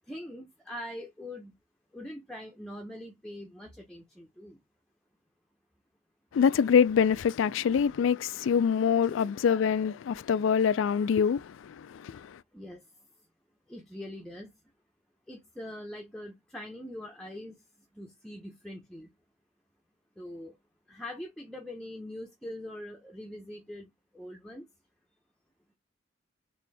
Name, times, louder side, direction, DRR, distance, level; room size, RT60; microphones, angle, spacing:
voice 1, 0.1-1.5 1.9-4.6 9.1-9.3 12.5-12.9 13.7-14.5 15.3-17.6 17.9-19.1 20.2-20.6 20.9-23.9 24.1-24.7, left 1 dB, 5° left, 0.7 m, -43 dB
voice 2, 6.3-12.4, left 7 dB, 90° left, 0.3 m, -25 dB
4.2 x 2.6 x 3.3 m
head